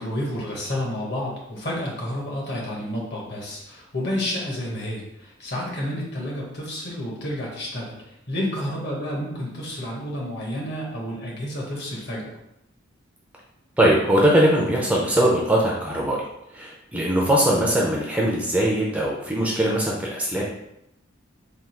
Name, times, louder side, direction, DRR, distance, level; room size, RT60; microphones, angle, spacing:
voice 1, 0.0-12.4, left 1 dB, 55° left, -3 dB, 1.2 m, -30 dB
voice 2, 13.8-16.2 16.5-20.4, right 1 dB, 5° right, -3 dB, 0.5 m, -21 dB
3.6 x 2.4 x 4.4 m, 0.82 s
head